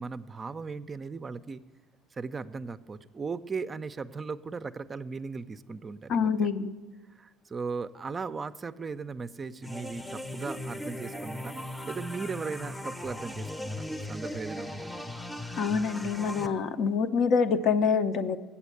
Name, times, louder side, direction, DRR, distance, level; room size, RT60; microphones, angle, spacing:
voice 1, 0.0-1.6 2.1-6.3 7.2-14.9, right 4 dB, 30° right, 12 dB, 0.4 m, -37 dB
voice 2, 6.1-6.8 15.6-18.4, left 5 dB, 60° left, 9 dB, 0.6 m, -26 dB
sound 1, 9.6-16.5, left 1 dB, 10° left, 0.7 m, -38 dB
8.0 x 7.1 x 8.4 m, 1.2 s
supercardioid pair, 80°, 0 cm